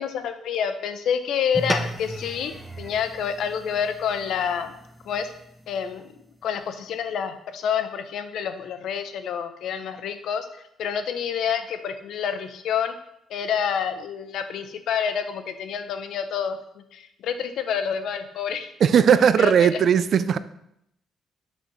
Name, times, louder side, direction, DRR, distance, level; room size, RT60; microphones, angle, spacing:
voice 1, 0.0-2.5 2.8-4.7 5.1-5.3 5.7-6.0 6.4-10.5 10.8-12.9 13.3-18.7 19.4-19.8, left 7 dB, 75° left, 0.6 m, -28 dB
sound 1, 1.5-6.2, equal, 5° right, 0.6 m, -35 dB
voice 2, 18.8-20.4, right 8 dB, 60° right, 0.3 m, -18 dB
6.2 x 5.6 x 3.1 m
cardioid pair, 90°, 0 cm